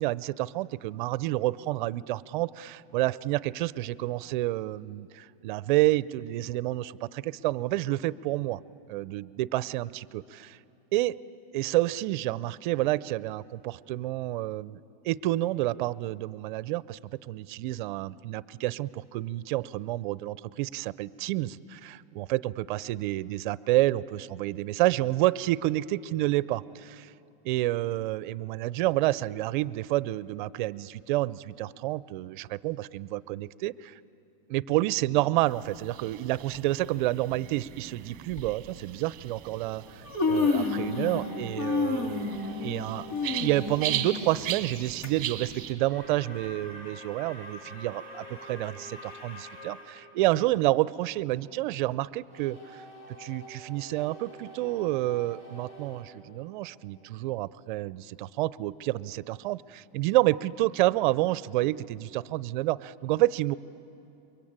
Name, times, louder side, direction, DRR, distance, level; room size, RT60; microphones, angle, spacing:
voice 1, 0.0-8.6 8.9-10.6 10.9-11.2 11.5-27.1 27.4-34.0 34.5-43.0 43.4-52.8 53.2-63.5, right 16 dB, 55° right, 18 dB, 0.6 m, -29 dB
sound 1, 35.5-45.7, right 12 dB, 30° right, 1.8 m, -39 dB
Human voice, 36.3-36.6 37.6-37.7 38.3-38.5 39.5-39.6 39.9-41.3 41.6-45.1 45.5-45.6 46.4-46.5, left 4 dB, 55° left, 3.7 m, -29 dB
sound 2, 40.3-44.1 45.8-50.0 52.3-57.1, equal, 40° left, 7.4 m, -46 dB
28.0 x 23.5 x 8.9 m, 2.8 s
supercardioid pair, 150°, 29 cm